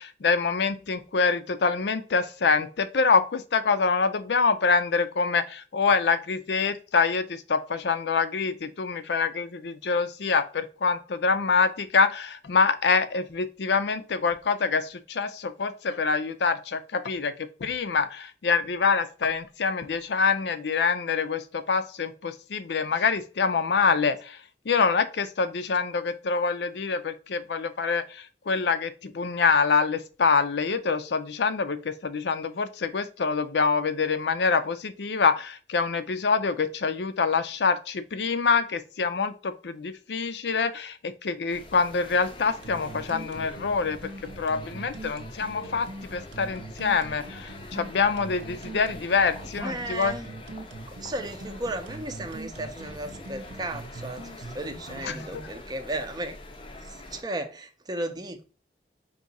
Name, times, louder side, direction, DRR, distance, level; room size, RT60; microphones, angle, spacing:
voice 1, 0.0-24.4 24.7-44.1 44.4-50.1 55.0-55.5, left 5 dB, 75° left, 0.5 m, -25 dB
sound 1, 41.5-57.2, left 2 dB, 30° left, 0.5 m, -45 dB
sound 2, 42.6-55.5, right 2 dB, 85° right, 0.7 m, -42 dB
voice 2, 49.4-50.3 50.9-56.3 56.8-58.4, right 1 dB, 20° right, 0.5 m, -35 dB
4.8 x 2.8 x 4.0 m
head